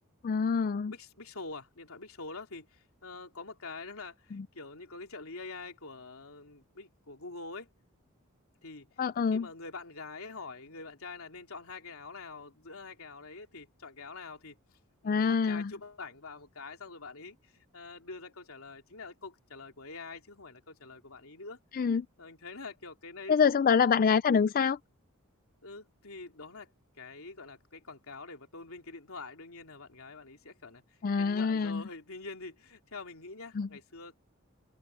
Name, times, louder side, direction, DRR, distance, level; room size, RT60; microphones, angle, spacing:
voice 1, 0.2-0.9 4.3-4.4 9.0-9.5 15.0-15.7 21.7-22.1 23.3-24.8 31.0-31.8 33.6-33.7, left 6 dB, 40° left, 0.4 m, -26 dB
voice 2, 0.9-7.7 8.6-8.9 9.3-14.6 15.0-21.6 21.9-23.7 25.6-26.7 27.0-34.2, left 3 dB, 75° left, 3.2 m, -45 dB
head